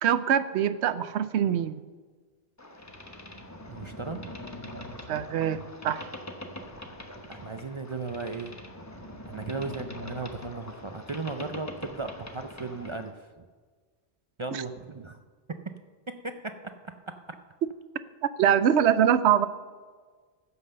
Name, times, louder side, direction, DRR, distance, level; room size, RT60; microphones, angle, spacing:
voice 1, 0.0-1.8 5.1-6.1 14.5-14.6 18.4-19.5, right 9 dB, 80° right, 13 dB, 0.9 m, -24 dB
Boat Water vehicle, 2.6-13.1, left 1 dB, 15° left, 0.9 m, -43 dB
voice 2, 3.7-4.2 7.3-8.5 9.3-13.4 14.4-15.2 16.1-17.4, right 3 dB, 40° right, 7 dB, 0.4 m, -36 dB
15.0 x 5.8 x 6.6 m, 1.5 s
omnidirectional pair, 1.1 m